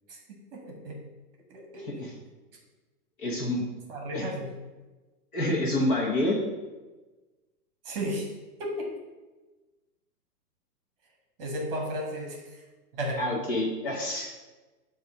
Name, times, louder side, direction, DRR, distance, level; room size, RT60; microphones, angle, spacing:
voice 1, 0.5-1.0 1.5-2.1 3.9-4.5 7.8-8.9 11.4-12.6 12.9-13.2, equal, 35° right, 1 dB, 1.2 m, -34 dB
voice 2, 1.8-2.1 3.2-3.6 4.1-4.3 5.3-6.4 13.2-14.3, left 1 dB, 35° left, -2 dB, 1.0 m, -28 dB
7.7 x 2.6 x 5.5 m, 1.2 s
hypercardioid pair, 175°, 48 cm